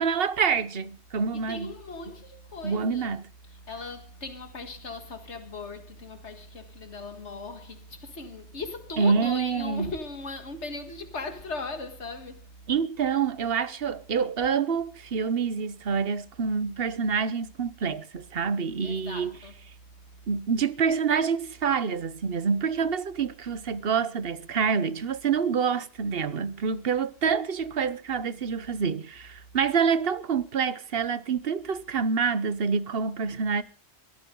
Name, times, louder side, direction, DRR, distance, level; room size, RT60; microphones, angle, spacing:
voice 1, 0.0-1.7 2.6-3.2 9.0-9.9 12.7-19.4 20.3-33.6, right 6 dB, 60° right, 1.1 m, -27 dB
voice 2, 1.3-3.2 3.4-12.7 18.8-19.5, left 3 dB, 85° left, 2.1 m, -38 dB
22.5 x 14.0 x 3.8 m
omnidirectional pair, 1.1 m